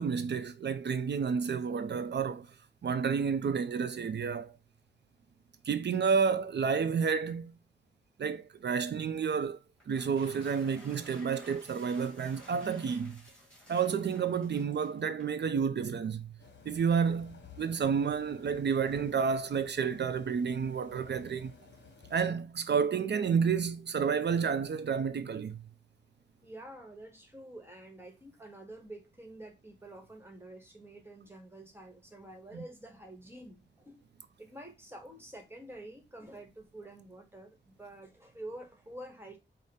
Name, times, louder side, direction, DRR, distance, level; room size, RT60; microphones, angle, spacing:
voice 1, 0.0-2.5 2.8-4.6 5.6-7.5 8.2-9.6 9.9-13.2 13.7-16.3 16.7-21.5 22.1-25.6, right 6 dB, 60° right, 0.4 m, -30 dB
sound 1, 9.8-15.4, left 1 dB, 5° left, 1.8 m, -55 dB
sound 2, 16.4-22.3, left 5 dB, 65° left, 0.9 m, -55 dB
voice 2, 26.4-34.0 34.4-39.4, right 1 dB, 10° right, 1.2 m, -48 dB
4.9 x 2.1 x 4.1 m
wide cardioid pair, 100°, 19 cm